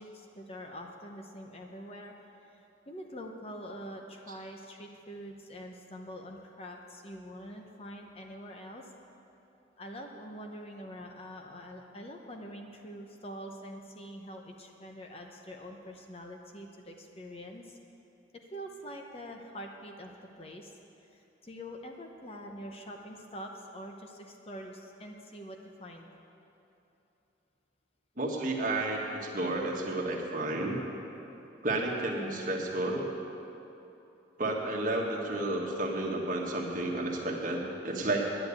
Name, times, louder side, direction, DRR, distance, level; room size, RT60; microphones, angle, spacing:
voice 1, 0.0-2.1 2.5-2.6 2.9-8.9 9.8-17.8 18.5-20.1 20.4-20.8 21.1-26.1, equal, 30° left, 2 dB, 0.8 m, -45 dB
voice 2, 28.2-30.8 31.6-33.1 34.4-38.3, right 2 dB, 45° right, -1 dB, 1.6 m, -31 dB
10.5 x 10.0 x 8.4 m, 2.9 s
head